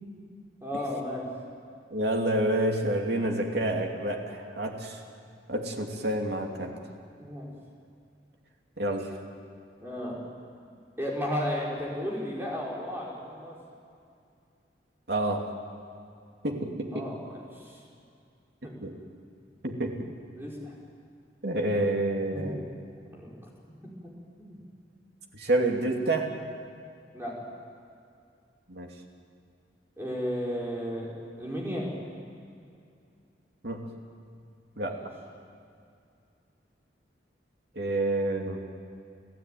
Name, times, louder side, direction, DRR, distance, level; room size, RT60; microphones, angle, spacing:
voice 1, 0.6-1.3 3.0-3.3 7.2-7.5 9.8-10.2 11.0-13.6 16.9-17.8 18.6-18.7 20.4-20.8 22.3-22.6 23.1-23.3 23.8-23.9 24.4-24.6 27.1-27.4 30.0-31.1 31.4-31.9 34.9-35.0, equal, 15° right, -4 dB, 5.4 m, -34 dB
voice 2, 1.9-5.0 5.5-6.7 8.8-9.1 15.1-15.4 16.4-17.0 18.8-18.9 19.6-20.0 21.4-22.6 25.3-26.3 28.7-28.9 33.6-33.8 34.8-35.0 37.7-38.6, right 1 dB, 65° right, 1 dB, 2.9 m, -28 dB
30.0 x 15.5 x 9.4 m, 2.4 s
head